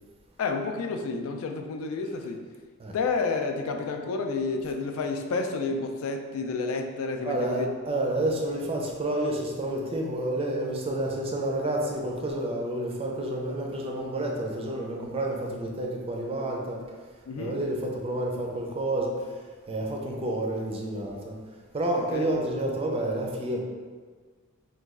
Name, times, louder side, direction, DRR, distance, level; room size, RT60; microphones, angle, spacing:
voice 1, 0.4-2.4 2.9-7.7 17.3-17.6 22.0-22.3, left 4 dB, 70° left, 5 dB, 0.3 m, -30 dB
voice 2, 7.2-16.8 17.4-19.1 19.7-21.4 21.7-23.6, right 1 dB, 25° right, 0 dB, 0.4 m, -29 dB
3.1 x 2.3 x 3.5 m, 1.5 s
head